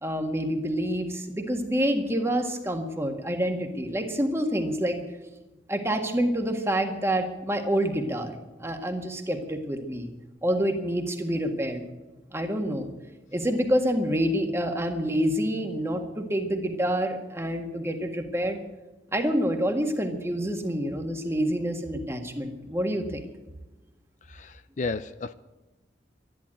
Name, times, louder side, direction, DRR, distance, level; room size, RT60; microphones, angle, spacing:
voice 1, 0.0-5.0 5.7-8.3 8.6-10.1 10.4-11.8 12.3-12.9 13.3-18.6 19.1-23.2, equal, 15° right, 4 dB, 1.7 m, -27 dB
voice 2, 24.3-25.3, left 3 dB, 40° left, 13 dB, 0.5 m, -33 dB
13.0 x 11.5 x 8.8 m, 1.1 s
head